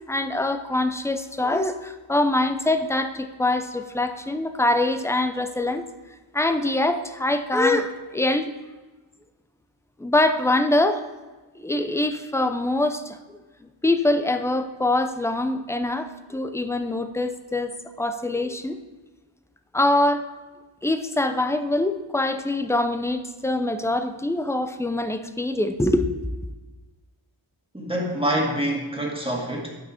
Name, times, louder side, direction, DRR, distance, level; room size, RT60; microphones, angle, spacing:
voice 1, 0.1-5.8 6.3-8.5 10.0-11.0 11.6-13.2 13.8-18.8 19.7-20.2 20.8-26.1, left 2 dB, 5° left, 8 dB, 0.6 m, -24 dB
voice 2, 27.7-29.7, right 1 dB, 10° right, -2 dB, 1.9 m, -26 dB
11.5 x 6.0 x 4.3 m, 1.2 s
wide cardioid pair, 70°, 50 cm